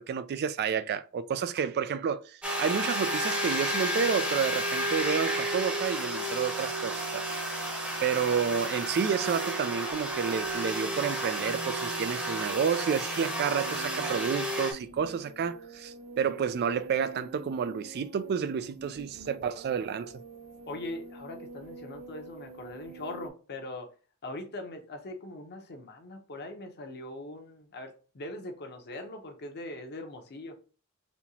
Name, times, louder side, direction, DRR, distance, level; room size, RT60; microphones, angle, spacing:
voice 1, 0.0-7.3 8.0-20.1, right 7 dB, 45° right, 0.3 m, -30 dB
sound 1, 2.4-14.7, right 1 dB, 5° right, 0.9 m, -32 dB
sound 2, 13.6-23.3, right 3 dB, 85° right, 0.9 m, -47 dB
voice 2, 20.7-23.9 24.2-30.5, left 2 dB, 50° left, 0.8 m, -41 dB
4.2 x 2.8 x 2.8 m
head